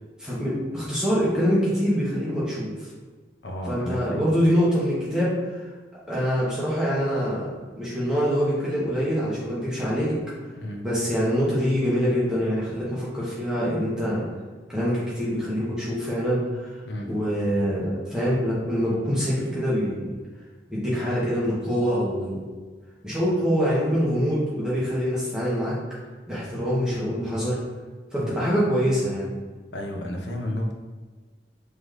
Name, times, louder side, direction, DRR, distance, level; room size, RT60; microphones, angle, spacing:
voice 1, 0.2-2.9 3.6-5.7 6.1-7.5 7.8-10.2 10.8-14.2 14.7-16.8 17.1-20.1 20.7-22.4 23.0-25.7 26.3-27.6 28.1-29.3, equal, 5° right, -9 dB, 1.0 m, -25 dB
voice 2, 3.4-4.2 10.5-10.8 16.8-17.1 28.2-28.4 29.7-30.7, left 1 dB, 85° left, 1 dB, 0.7 m, -31 dB
3.2 x 3.0 x 3.8 m, 1.4 s
head